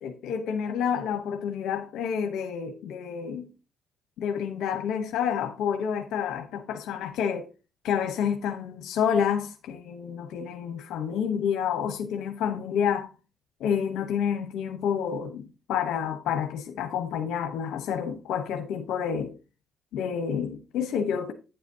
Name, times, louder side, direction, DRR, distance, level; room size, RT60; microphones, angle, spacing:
voice 1, 0.0-3.5 4.2-7.5 7.8-13.1 13.6-19.3 19.9-21.3, left 8 dB, 85° left, 0.9 m, -29 dB
9.8 x 7.9 x 2.8 m
cardioid pair, 90°, 0 cm